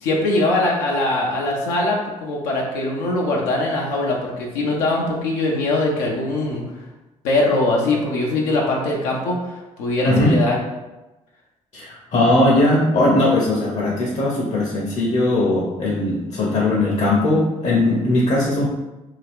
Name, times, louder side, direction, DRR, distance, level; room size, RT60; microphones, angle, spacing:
voice 1, 0.0-6.6 7.2-10.6, left 2 dB, 90° left, -2 dB, 0.5 m, -21 dB
voice 2, 10.1-10.4 11.7-18.7, left 1 dB, 50° left, -4 dB, 0.7 m, -19 dB
2.8 x 2.3 x 3.4 m, 1.0 s
supercardioid pair, 55°, 14 cm